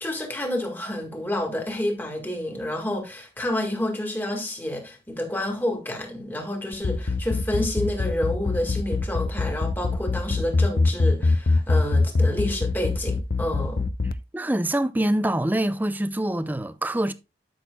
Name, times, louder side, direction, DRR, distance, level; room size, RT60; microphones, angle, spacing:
voice 1, 0.0-13.9, left 1 dB, 10° left, 1.8 m, -29 dB
sound 1, 6.7-14.1, left 3 dB, 55° left, 0.6 m, -22 dB
voice 2, 14.0-17.1, right 1 dB, 10° right, 0.4 m, -25 dB
12.5 x 6.3 x 2.2 m
head